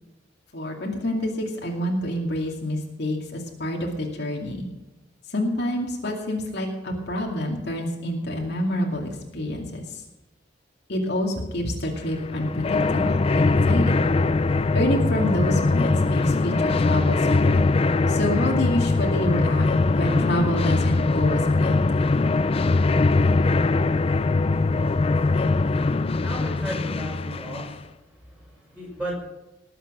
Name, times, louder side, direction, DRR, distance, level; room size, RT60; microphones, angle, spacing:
voice 1, 0.5-4.7 5.3-10.0 10.9-14.0 14.7-17.6 18.1-19.7 19.9-21.8, left 1 dB, 60° left, -1 dB, 2.4 m, -27 dB
sound 1, 12.0-27.8, left 3 dB, 30° left, 0.4 m, -21 dB
voice 2, 26.2-29.1, equal, 5° right, -4 dB, 6.3 m, -35 dB
19.5 x 7.9 x 6.2 m, 0.98 s
head